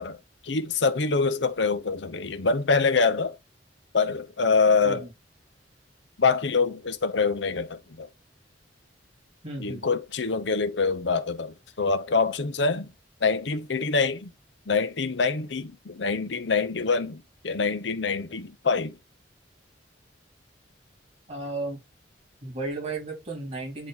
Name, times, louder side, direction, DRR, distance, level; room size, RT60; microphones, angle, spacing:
voice 1, 0.0-3.4 3.9-5.1 6.2-8.1 9.6-12.9 13.2-14.3 14.7-19.0, left 4 dB, 75° left, 0.8 m, -25 dB
voice 2, 9.4-9.9 21.3-21.8 22.4-23.9, right 2 dB, 35° right, 3.3 m, -34 dB
9.1 x 3.0 x 4.0 m
head